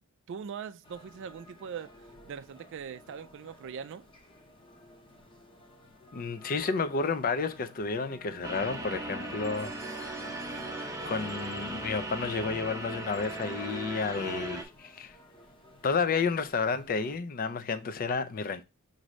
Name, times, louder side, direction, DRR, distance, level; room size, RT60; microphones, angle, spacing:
voice 1, 0.3-1.9 2.2-4.1 10.3-10.6, right 7 dB, 60° right, 0.3 m, -41 dB
sound 1, 0.8-17.2, left 1 dB, 25° left, 0.9 m, -54 dB
voice 2, 6.1-10.5 11.1-15.1 15.8-18.6, left 4 dB, 40° left, 0.4 m, -31 dB
sound 2, 8.4-14.6, right 2 dB, 15° right, 0.8 m, -38 dB
6.1 x 2.6 x 3.1 m
head